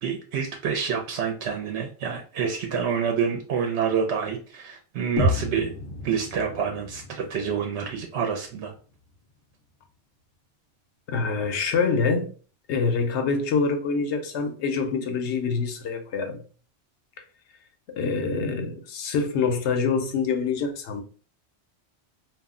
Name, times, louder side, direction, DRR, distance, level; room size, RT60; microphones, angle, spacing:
voice 1, 0.0-5.7 6.0-8.7, right 6 dB, 80° right, 0.8 m, -27 dB
sound 1, 5.2-9.1, left 1 dB, 60° left, 0.8 m, -31 dB
voice 2, 11.1-12.3 12.7-16.4 17.9-21.0, left 5 dB, 90° left, 0.9 m, -25 dB
2.4 x 2.0 x 3.5 m
omnidirectional pair, 1.1 m